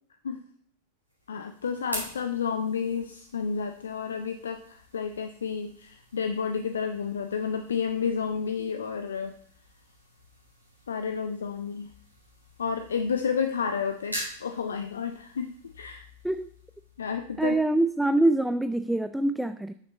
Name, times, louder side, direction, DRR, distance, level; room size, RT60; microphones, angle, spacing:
sound 1, 1.1-18.0, right 1 dB, 85° right, 3.9 m, -46 dB
voice 1, 1.3-9.3 10.9-11.9 12.6-16.1 17.0-17.6, left 6 dB, 70° left, 8 dB, 0.6 m, -31 dB
voice 2, 17.4-19.7, right 2 dB, 5° right, 11 dB, 0.4 m, -24 dB
12.5 x 6.6 x 4.0 m, 0.65 s
figure-of-eight pair, 90°, 0 cm